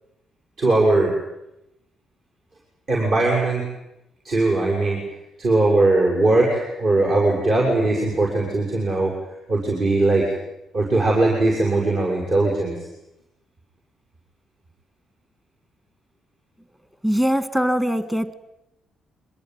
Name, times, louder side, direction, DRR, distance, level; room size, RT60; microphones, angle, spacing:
voice 1, 0.6-1.1 2.9-3.7 4.2-5.0 5.4-9.1 9.5-10.3 10.7-12.9, right 2 dB, 55° right, -1 dB, 7.1 m, -20 dB
voice 2, 17.0-18.3, equal, 10° right, 14 dB, 1.6 m, -21 dB
25.0 x 21.0 x 9.5 m, 0.89 s
cardioid pair, 90°, 0 cm